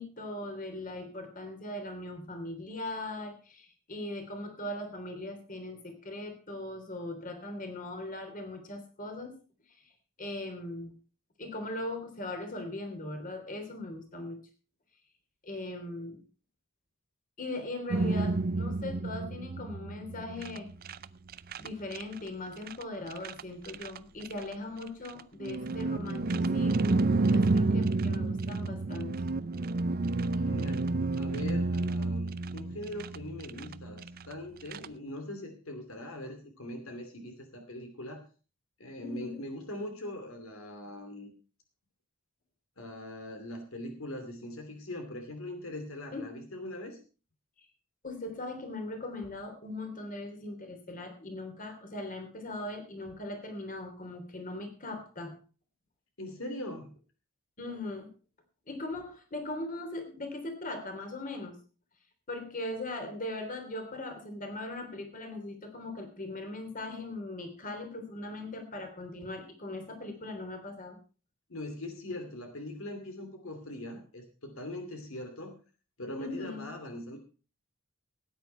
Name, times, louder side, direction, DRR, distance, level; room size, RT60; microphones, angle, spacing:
voice 1, 0.0-9.3 10.2-10.9 11.4-14.4 15.4-16.2 17.4-20.7 21.6-29.1 39.0-39.4 46.1-46.3 48.0-55.3 57.6-58.1 58.7-61.5 62.3-71.0 76.2-76.7, left 2 dB, 40° left, 5 dB, 3.2 m, -39 dB
sound 1, 17.9-21.0 21.3-22.3 22.7-22.8 23.1-24.0 24.2-24.5 25.0-34.3 34.7-34.9, right 3 dB, 45° right, 0.5 m, -30 dB
voice 2, 30.3-38.2 38.8-41.3 42.8-47.0 56.2-56.9 71.5-75.6 76.0-77.2, left 1 dB, 75° left, 5 dB, 2.7 m, -41 dB
17.5 x 9.5 x 4.4 m, 0.36 s
head